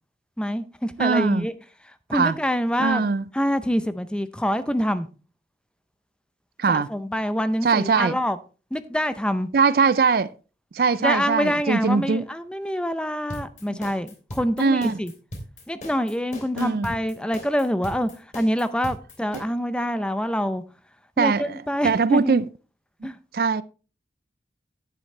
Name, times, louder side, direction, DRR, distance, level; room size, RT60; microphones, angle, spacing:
voice 1, 0.4-1.5 2.1-3.0 3.3-5.1 6.7-8.4 8.7-9.5 11.0-15.1 15.7-20.6 21.2-22.4 23.0-23.2, equal, 5° left, 0.5 m, -26 dB
voice 2, 1.0-1.5 2.1-2.4 2.8-3.2 6.6-6.9 7.6-8.2 9.5-10.3 10.7-12.3 13.7-13.8 14.6-15.0 16.5-16.9 19.3-19.4 21.2-22.5 23.3-23.6, right 5 dB, 55° right, 0.4 m, -21 dB
sound 1, 13.3-19.4, equal, 45° left, 3.0 m, -38 dB
11.0 x 9.2 x 3.2 m
head